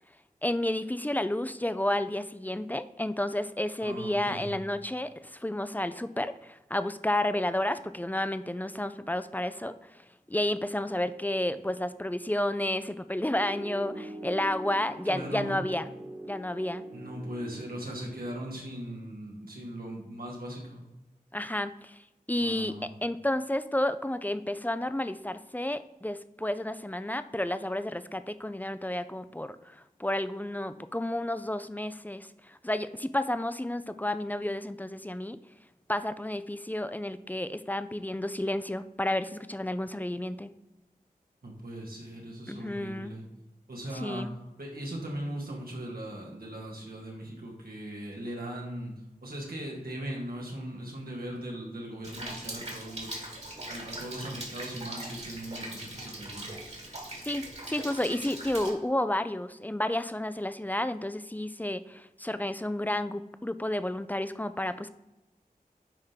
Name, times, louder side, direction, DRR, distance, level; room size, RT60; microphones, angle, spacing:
voice 1, 0.4-15.9 16.2-16.8 21.3-22.0 22.3-35.4 35.9-40.5 42.5-43.1 43.9-44.3 57.2-57.4 57.7-64.9, left 1 dB, 10° left, 12 dB, 0.4 m, -31 dB
voice 2, 3.8-4.6 15.0-15.6 16.9-20.8 22.4-22.9 41.4-43.2 43.7-44.3 44.6-48.9 49.2-53.2 53.7-56.5, right 1 dB, 90° right, -2 dB, 2.0 m, -39 dB
Piano, 13.3-18.3, right 1 dB, 25° right, 1.4 m, -43 dB
Rain, 52.0-58.7, right 1 dB, 45° right, 1.8 m, -41 dB
9.8 x 3.7 x 4.4 m, 1.0 s
wide cardioid pair, 60°, 15 cm